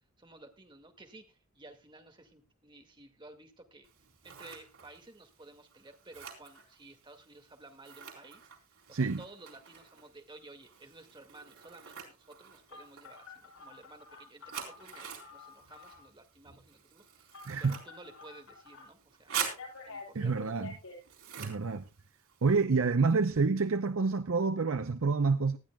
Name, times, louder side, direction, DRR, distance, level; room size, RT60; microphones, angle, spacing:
voice 1, 0.2-3.9 4.2-8.5 8.9-19.4 19.9-20.5, right 2 dB, 20° right, 2.0 m, -54 dB
Scissors, 3.8-22.6, right 8 dB, 85° right, 4.0 m, -46 dB
Telephone, 12.7-16.0 17.3-18.8 19.3-21.0, left 3 dB, 80° left, 7.9 m, -49 dB
voice 2, 17.5-17.8 20.1-20.8 21.4-21.8 22.4-25.6, right 4 dB, 65° right, 0.6 m, -28 dB
19.0 x 12.0 x 2.3 m
head